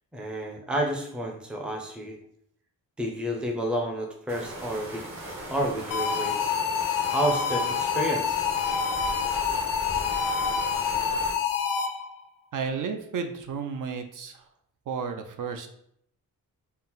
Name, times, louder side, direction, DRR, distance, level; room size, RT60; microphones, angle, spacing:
voice 1, 0.1-2.2 3.0-5.1 5.5-6.5 7.1-8.5, right 1 dB, 5° right, 1 dB, 0.4 m, -30 dB
sound 1, 4.3-11.3, right 1 dB, 50° right, 1.0 m, -38 dB
sound 2, 5.9-12.2, left 6 dB, 65° left, 0.5 m, -27 dB
voice 2, 12.5-14.5 14.9-15.7, right 5 dB, 65° right, 6 dB, 0.5 m, -32 dB
4.2 x 2.0 x 3.8 m, 0.69 s
wide cardioid pair, 180°, 35 cm